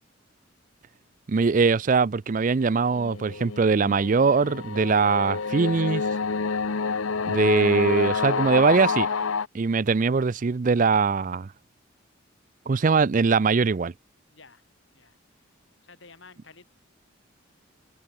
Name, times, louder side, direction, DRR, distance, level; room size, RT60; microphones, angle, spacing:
voice 1, 1.3-6.0 7.3-9.1 9.5-11.5 12.7-13.9, right 4 dB, 40° right, 0.4 m, -22 dB
sound 1, 2.8-9.5, left 5 dB, 90° left, 0.9 m, -28 dB
voice 2, 6.8-7.2 14.3-14.7 14.9-15.2 15.8-16.7, left 4 dB, 65° left, 5.3 m, -51 dB
head